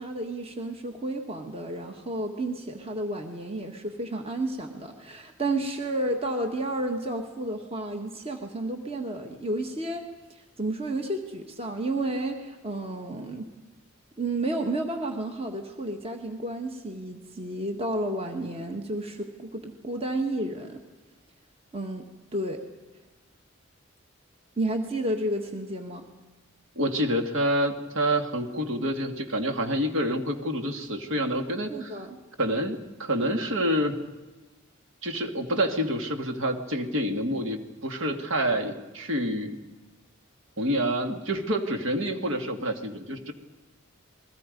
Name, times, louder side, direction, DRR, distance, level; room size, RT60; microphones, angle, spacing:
voice 1, 0.0-10.0 10.3-13.5 14.2-20.8 21.7-22.1 22.3-22.6 24.6-26.0 31.7-32.2, right 1 dB, 25° right, 4 dB, 1.6 m, -31 dB
voice 2, 26.8-32.0 32.4-34.0 35.0-39.6 40.6-43.3, equal, 65° right, 5 dB, 2.1 m, -27 dB
29.0 x 21.5 x 5.3 m, 1.2 s
head